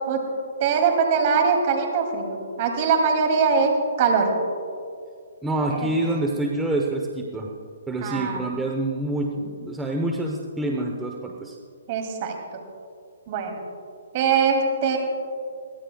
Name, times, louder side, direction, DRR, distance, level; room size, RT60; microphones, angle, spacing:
voice 1, 0.6-4.3 5.7-5.9 8.0-8.4 11.9-12.6 13.3-13.6 14.1-15.0, right 5 dB, 40° right, 3 dB, 2.7 m, -22 dB
voice 2, 5.4-7.5 7.9-11.6, right 2 dB, 5° right, 1 dB, 0.9 m, -26 dB
22.0 x 16.5 x 2.3 m, 2.3 s
hypercardioid pair, 155°, 0 cm